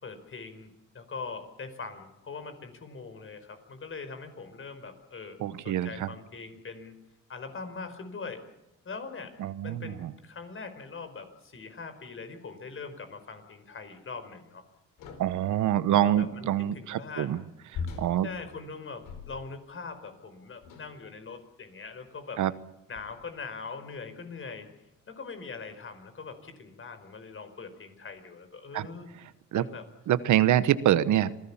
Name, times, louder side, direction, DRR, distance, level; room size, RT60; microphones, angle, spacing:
voice 1, 0.0-5.4 5.6-7.0 7.3-8.4 8.8-9.3 9.6-14.6 15.9-17.4 18.2-22.4 22.9-24.7 25.1-29.1 29.5-29.8, left 4 dB, 45° left, 8 dB, 4.9 m, -42 dB
voice 2, 5.4-6.1 9.4-10.1 15.2-17.4 18.0-18.3 22.4-22.5 28.7-28.9 29.5-29.6 30.1-31.4, right 12 dB, 75° right, 15 dB, 1.2 m, -25 dB
sound 1, 15.0-15.5 17.7-19.7 20.6-21.1 21.9-22.1 23.0-23.4, left 4 dB, 90° left, 4.7 m, -41 dB
27.0 x 18.5 x 7.2 m, 0.97 s
cardioid pair, 90°, 30 cm